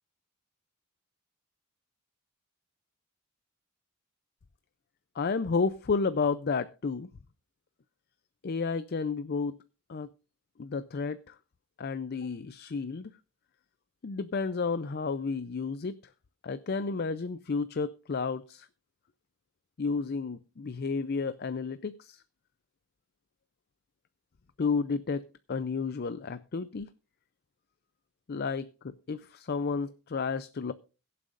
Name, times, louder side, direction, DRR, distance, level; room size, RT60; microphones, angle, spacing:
voice 1, 5.2-7.1 8.4-9.6 9.9-10.1 10.6-11.4 11.8-13.1 14.0-16.0 16.4-18.7 19.8-22.2 24.6-26.9 28.3-30.7, left 4 dB, 45° left, 13 dB, 0.5 m, -32 dB
21.5 x 7.6 x 2.5 m, 0.34 s
head